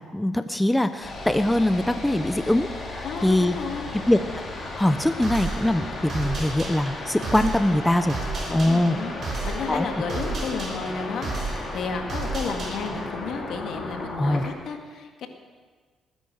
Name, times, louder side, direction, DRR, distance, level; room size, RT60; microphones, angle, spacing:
voice 1, 0.1-3.5 4.1-4.2 4.8-8.2 8.5-9.0 9.7-9.9 14.2-14.4, left 1 dB, 10° left, 9 dB, 0.8 m, -22 dB
sound 1, 1.0-14.5, left 2 dB, 40° left, 4.1 m, -35 dB
voice 2, 3.0-3.9 8.5-15.3, left 5 dB, 75° left, 4 dB, 2.0 m, -32 dB
sound 2, 5.2-13.1, right 3 dB, 55° right, 6.7 m, -33 dB
20.0 x 10.5 x 6.6 m, 1.5 s
cardioid pair, 90°, 0 cm